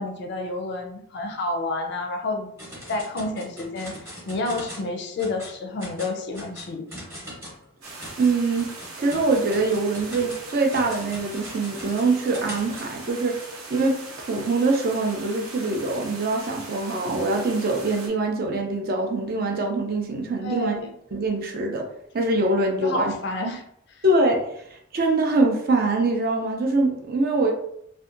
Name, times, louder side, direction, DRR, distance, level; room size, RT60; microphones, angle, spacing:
voice 1, 0.0-2.5 2.9-4.0 4.3-6.9 20.4-20.9 22.8-23.6 23.9-24.0, left 2 dB, 55° left, 4 dB, 0.4 m, -29 dB
sound 1, 2.6-4.9 5.2-5.5 5.8-12.9, equal, 10° right, 0.8 m, -41 dB
sound 2, 7.8-18.1, right 2 dB, 90° right, 0.6 m, -40 dB
voice 2, 8.2-8.7 9.0-13.4 13.7-20.7 21.1-21.8 22.1-23.1 24.0-27.5, right 2 dB, 45° right, 2 dB, 0.4 m, -23 dB
2.6 x 2.2 x 2.4 m, 0.74 s
head